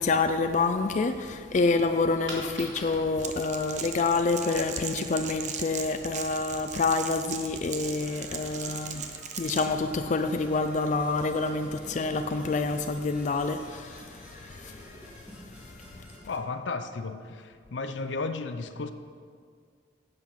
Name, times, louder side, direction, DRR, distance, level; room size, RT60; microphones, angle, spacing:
voice 1, 0.0-15.1, left 3 dB, 40° left, 0.4 m, -28 dB
Coin (dropping), 2.2-7.9, right 1 dB, 80° right, 2.7 m, -47 dB
Crackle, 3.2-9.7, right 7 dB, 40° right, 0.7 m, -38 dB
Percussion / Brass instrument, 7.8-16.4, equal, 10° right, 2.4 m, -50 dB
voice 2, 16.3-18.9, left 3 dB, 85° left, 0.6 m, -34 dB
10.5 x 8.0 x 5.8 m
head